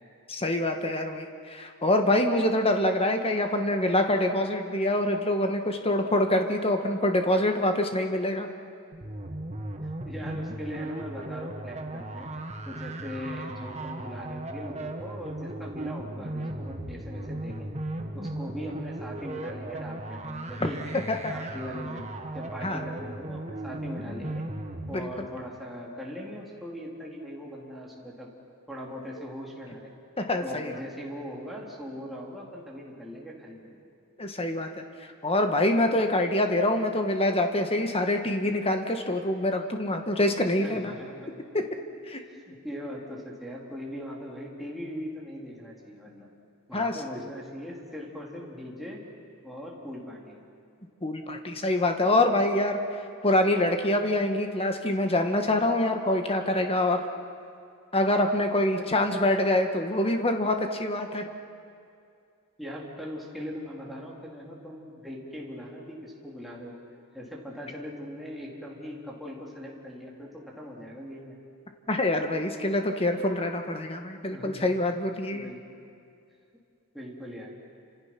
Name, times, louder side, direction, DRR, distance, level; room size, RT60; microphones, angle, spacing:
voice 1, 0.3-8.5 20.6-20.7 21.1-21.3 22.6-22.8 24.9-25.1 29.2-29.3 30.2-30.7 34.2-34.7 35.2-40.9 41.5-41.7 42.1-42.2 46.7-47.0 51.0-52.8 53.2-57.0 57.9-61.2 71.9-75.5, left 1 dB, 25° left, 5 dB, 1.7 m, -25 dB
sound 1, 8.9-24.9, right 1 dB, 30° right, 1.5 m, -37 dB
voice 2, 10.1-12.3 12.7-17.7 18.1-21.0 21.3-22.0 22.3-24.5 24.9-28.3 28.7-29.9 30.4-33.8 40.6-41.3 42.2-46.3 46.7-49.0 49.4-50.4 58.7-58.9 62.6-66.8 67.1-71.4 74.3-74.7 75.3-75.8 76.9-77.6, equal, ahead, -4 dB, 3.6 m, -40 dB
29.5 x 27.0 x 6.1 m, 2.4 s
head